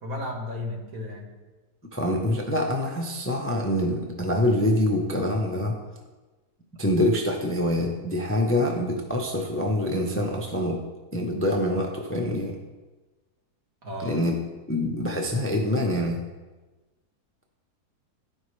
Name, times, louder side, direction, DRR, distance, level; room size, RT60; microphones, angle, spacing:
voice 1, 0.0-1.4 13.8-14.2, left 1 dB, 60° right, -1 dB, 1.8 m, -34 dB
voice 2, 1.9-5.8 6.8-10.8 11.1-12.6 14.0-14.4 14.7-16.2, left 1 dB, 20° left, 1 dB, 0.3 m, -25 dB
13.0 x 5.3 x 3.2 m, 1.2 s
omnidirectional pair, 1.7 m